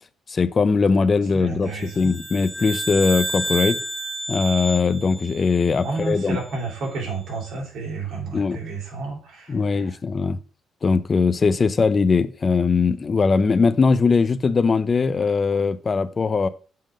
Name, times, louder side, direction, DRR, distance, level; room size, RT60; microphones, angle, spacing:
voice 1, 0.3-3.8 4.3-6.4 8.3-8.6 9.5-10.4 10.8-16.5, left 4 dB, 35° left, 0.5 m, -20 dB
voice 2, 1.3-2.1 5.8-10.0, right 3 dB, 75° right, 3.5 m, -31 dB
sound 1, 1.8-6.3, right 2 dB, 20° right, 1.8 m, -30 dB
7.6 x 3.8 x 5.0 m
cardioid pair, 90°, 0 cm